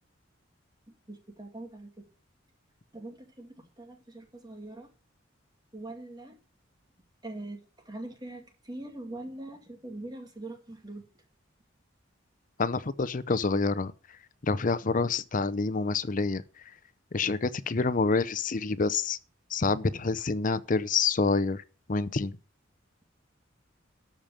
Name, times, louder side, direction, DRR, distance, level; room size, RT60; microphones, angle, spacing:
voice 1, 1.1-1.9 2.9-4.9 5.7-6.4 7.2-7.6 7.9-11.1, right 2 dB, 20° right, 2.3 m, -42 dB
voice 2, 12.6-14.2 14.4-16.7 17.1-19.2 19.5-21.6 21.9-22.4, left 4 dB, 40° left, 0.6 m, -27 dB
13.0 x 5.1 x 7.3 m
head